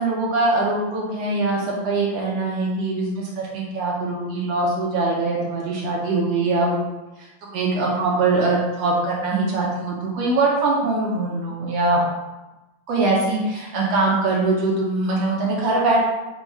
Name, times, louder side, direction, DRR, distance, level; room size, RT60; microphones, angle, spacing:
voice 1, 0.0-6.8 7.2-12.0 12.9-16.0, right 2 dB, 75° right, -3 dB, 1.6 m, -22 dB
5.3 x 2.1 x 4.6 m, 1.1 s
omnidirectional pair, 3.3 m